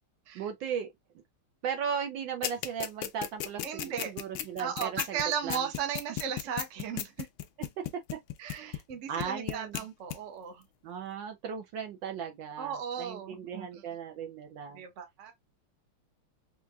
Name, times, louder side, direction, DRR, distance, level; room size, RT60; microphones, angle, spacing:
voice 1, 0.3-0.9 1.6-5.6 8.5-8.8 9.1-9.8 10.8-14.8, right 7 dB, 70° right, 1.2 m, -37 dB
sound 1, 2.4-8.9 9.2-9.8 10.1-10.2, left 12 dB, 75° left, 1.2 m, -34 dB
voice 2, 3.6-4.1 4.6-7.3 8.4-10.6 12.6-13.7 14.7-15.3, right 7 dB, 55° right, 0.8 m, -36 dB
4.6 x 2.5 x 2.2 m
omnidirectional pair, 2.4 m